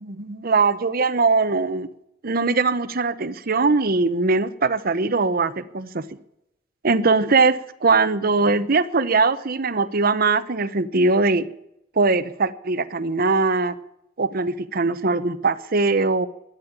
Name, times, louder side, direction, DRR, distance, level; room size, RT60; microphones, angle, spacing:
voice 1, 0.0-1.9 2.2-6.1 6.8-11.5 11.9-13.8 14.2-16.3, right 3 dB, 50° right, 14 dB, 0.8 m, -21 dB
12.0 x 10.5 x 8.6 m, 0.81 s
head